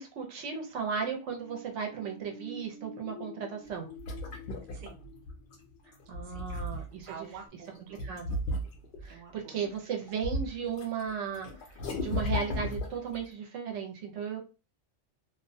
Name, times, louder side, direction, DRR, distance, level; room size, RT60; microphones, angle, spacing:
voice 1, 0.0-3.9 6.1-7.3 8.0-8.4 9.0-11.5 12.0-14.4, right 6 dB, 75° right, 3 dB, 1.0 m, -35 dB
sound 1, 0.8-7.1 7.5-7.6, left 2 dB, 85° left, 0.9 m, -50 dB
sound 2, 3.7-5.6 6.0-7.1 8.0-9.1 9.6-10.9 11.1-13.2, left 1 dB, 60° left, 0.6 m, -35 dB
voice 2, 7.1-8.2 9.1-9.6, right 6 dB, 55° right, 2 dB, 0.6 m, -48 dB
2.4 x 2.1 x 2.6 m, 0.32 s
omnidirectional pair, 1.2 m